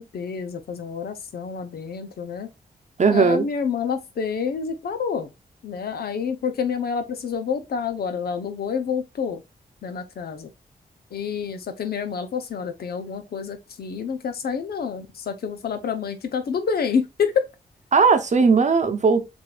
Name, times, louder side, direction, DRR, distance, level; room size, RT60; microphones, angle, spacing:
voice 1, 0.0-2.5 3.1-5.3 5.6-9.4 9.8-10.5 11.1-17.5, left 6 dB, 85° left, 0.8 m, -28 dB
voice 2, 3.0-3.5 17.9-19.3, right 5 dB, 50° right, 0.8 m, -18 dB
6.8 x 2.7 x 2.4 m
cardioid pair, 65°, 16 cm